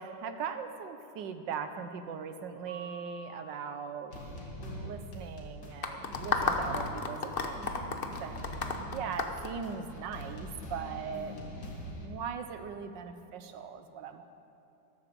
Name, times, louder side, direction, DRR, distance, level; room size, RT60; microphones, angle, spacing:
voice 1, 0.0-4.1 4.6-11.4 12.0-14.2, right 6 dB, 70° right, 8 dB, 1.5 m, -40 dB
Mallet percussion, 2.7-4.5, right 1 dB, 5° left, 1.0 m, -50 dB
sound 1, 4.1-12.1, equal, 60° left, 2.6 m, -43 dB
sound 2, 5.8-10.2, left 4 dB, 40° left, 0.8 m, -32 dB
13.0 x 12.0 x 7.6 m, 2.8 s
omnidirectional pair, 2.1 m